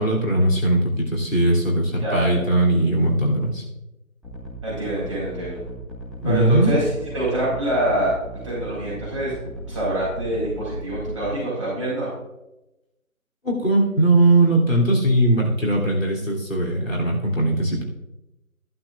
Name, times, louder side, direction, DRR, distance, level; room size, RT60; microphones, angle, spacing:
voice 1, 0.0-3.6 6.2-6.7 13.4-17.8, right 1 dB, 65° left, -2 dB, 3.1 m, -19 dB
voice 2, 2.0-2.4 4.6-5.6 6.2-6.8 7.1-8.1 8.4-9.3 9.7-12.1, right 1 dB, 20° right, -9 dB, 4.5 m, -25 dB
sound 1, 4.2-11.3, equal, ahead, 0.8 m, -36 dB
13.5 x 11.5 x 2.5 m, 0.94 s
figure-of-eight pair, 165°, 42 cm